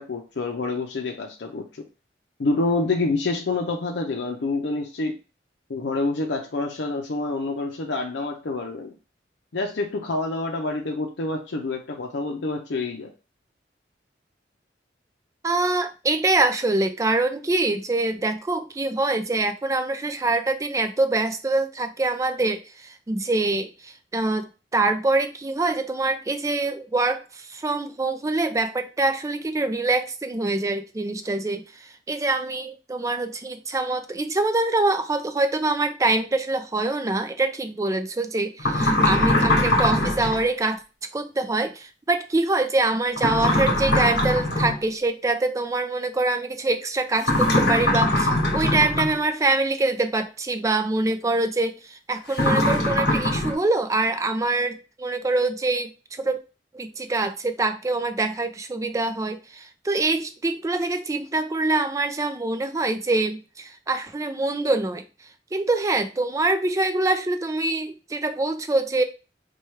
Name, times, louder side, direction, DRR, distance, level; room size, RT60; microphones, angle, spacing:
voice 1, 0.0-1.6 2.4-5.1 5.7-8.9 9.5-13.1, left 3 dB, 80° left, 2 dB, 0.6 m, -27 dB
voice 2, 15.4-40.8 41.1-56.4 56.7-65.0 65.5-69.0, right 2 dB, 20° right, 8 dB, 0.3 m, -24 dB
sound 1, 38.6-40.4 43.2-44.8 47.2-49.2 52.3-53.5, left 1 dB, 65° left, 1.1 m, -21 dB
4.4 x 2.3 x 3.1 m, 0.31 s
head